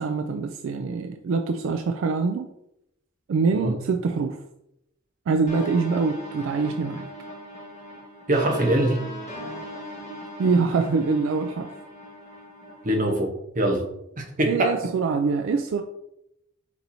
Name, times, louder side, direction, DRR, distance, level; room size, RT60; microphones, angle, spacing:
voice 1, 0.0-2.5 3.3-4.4 5.3-7.1 10.4-11.7 14.4-15.8, right 4 dB, 75° right, 6 dB, 0.3 m, -24 dB
sound 1, 5.5-13.1, equal, 35° left, 1.6 m, -39 dB
voice 2, 8.3-9.0 12.8-13.8 14.2-14.7, right 1 dB, 45° right, 1 dB, 0.9 m, -23 dB
4.4 x 4.1 x 2.7 m, 0.81 s
head